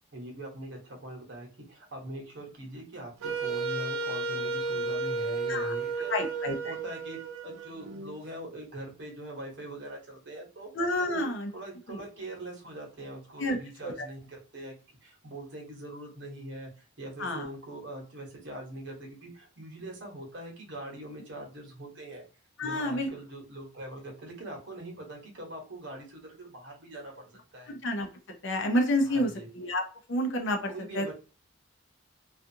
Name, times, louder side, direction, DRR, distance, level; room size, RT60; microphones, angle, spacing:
voice 1, 0.1-6.1 6.6-10.7 11.1-11.3 11.5-14.7 15.0-22.2 22.6-27.8 29.0-29.5 30.6-31.1, right 1 dB, 55° right, -1 dB, 1.0 m, -42 dB
Wind instrument woodwind instrument, 3.2-8.1, right 3 dB, 90° right, 0.5 m, -33 dB
voice 2, 6.1-6.7 10.7-11.5 11.9-12.0 13.4-13.6 13.8-13.9 17.2-17.5 22.6-23.1 27.7-28.1 28.4-29.8 30.1-31.1, left 1 dB, 60° left, 4 dB, 0.6 m, -29 dB
2.5 x 2.4 x 2.6 m, 0.36 s
head